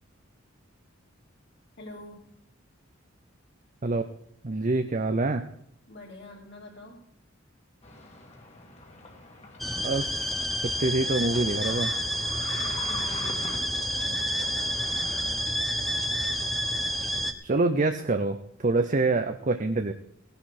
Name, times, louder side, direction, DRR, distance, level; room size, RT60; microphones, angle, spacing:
voice 1, 1.8-2.2 5.9-7.1 12.6-14.8, left 1 dB, 60° left, 0 dB, 3.9 m, -46 dB
voice 2, 4.4-5.5 9.8-10.2 10.6-11.9 17.4-19.9, right 2 dB, 40° right, 7 dB, 0.7 m, -26 dB
sound 1, 7.8-15.4, left 2 dB, 35° left, 2.4 m, -44 dB
sound 2, 9.6-17.3, equal, ahead, 1.0 m, -29 dB
17.0 x 11.0 x 4.3 m, 0.74 s
head